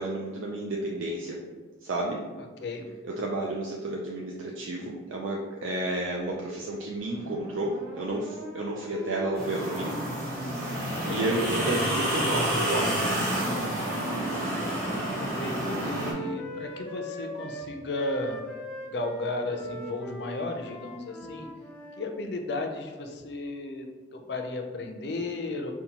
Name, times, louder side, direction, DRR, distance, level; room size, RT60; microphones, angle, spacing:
voice 1, 0.0-1.4 1.8-2.2 3.0-9.9 11.1-13.5 15.8-16.1, right 2 dB, 85° right, -1 dB, 0.4 m, -31 dB
voice 2, 2.4-2.9 10.9-11.3 15.2-18.4 18.8-21.5 22.0-25.7, left 2 dB, 60° left, 4 dB, 0.4 m, -34 dB
sound 1, 7.0-12.9, equal, 20° right, 0.8 m, -41 dB
sound 2, 9.3-16.1, right 1 dB, 50° right, 1.0 m, -29 dB
Wind instrument woodwind instrument, 13.7-22.1, equal, 5° left, 0.5 m, -41 dB
5.3 x 2.2 x 2.9 m, 1.3 s
head